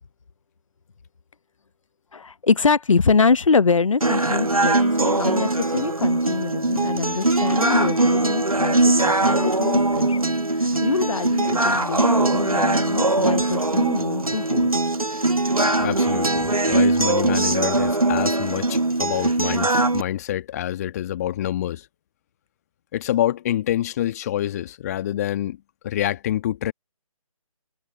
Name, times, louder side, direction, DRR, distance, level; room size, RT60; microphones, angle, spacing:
voice 1, 2.1-14.7, left 4 dB, 65° left, 0.9 m, -24 dB
sound 1, 4.0-20.0, right 2 dB, 85° right, 2.2 m, -21 dB
voice 2, 15.8-21.9 22.9-26.7, left 12 dB, 25° left, 1.9 m, -27 dB
figure-of-eight pair, 145°, 18 cm